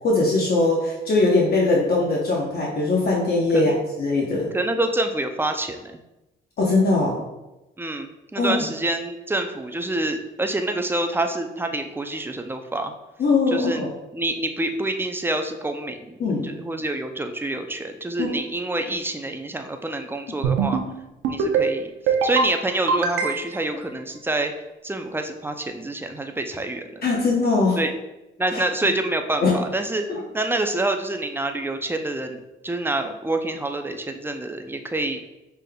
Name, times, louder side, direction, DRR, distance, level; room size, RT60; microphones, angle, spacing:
voice 1, 0.0-3.7 4.0-4.5 6.6-7.2 8.4-8.6 13.2-13.9 16.2-16.5 18.2-18.3 27.0-27.8 29.4-29.6 30.1-30.2, left 3 dB, 50° left, -3 dB, 0.9 m, -21 dB
voice 2, 4.5-6.0 7.8-12.9 13.5-13.9 14.1-20.8 21.3-24.5 24.8-26.8 27.8-27.9 28.4-30.0 30.3-35.2, right 2 dB, 10° right, 6 dB, 0.4 m, -27 dB
sound 1, 20.4-20.9 21.2-21.7 22.1-22.5 22.9-23.7, right 5 dB, 85° right, 0.6 m, -22 dB
5.3 x 3.4 x 2.3 m, 0.97 s
cardioid pair, 90°, 20 cm